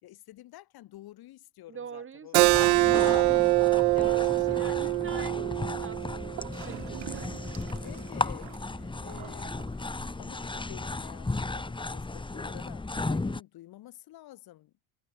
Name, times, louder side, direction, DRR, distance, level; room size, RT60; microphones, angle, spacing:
voice 1, 0.0-2.6 3.1-3.5 3.9-5.4 7.7-9.5 10.2-14.7, left 15 dB, 60° left, 5.0 m, -50 dB
voice 2, 1.7-3.4 3.9-7.6, right 6 dB, 30° right, 1.6 m, -45 dB
Keyboard (musical), 2.3-7.5, right 21 dB, 90° right, 0.6 m, -25 dB
sound 1, 2.4-13.4, left 3 dB, 10° left, 1.6 m, -35 dB
Gurgling / Toilet flush, 6.4-10.4, right 26 dB, 70° right, 1.5 m, -46 dB
hypercardioid pair, 75°, 41 cm